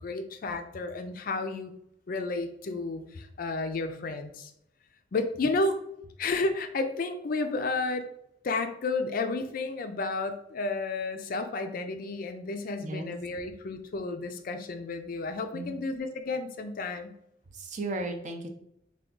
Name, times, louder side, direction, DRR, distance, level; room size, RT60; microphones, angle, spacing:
voice 1, 0.0-1.7 2.1-4.5 5.1-5.8 6.2-8.1 8.4-17.1, left 3 dB, 50° left, 7 dB, 0.4 m, -32 dB
voice 2, 12.8-13.1 15.5-15.8 17.5-18.5, right 2 dB, 40° right, 4 dB, 0.5 m, -35 dB
3.4 x 2.3 x 3.7 m, 0.76 s
head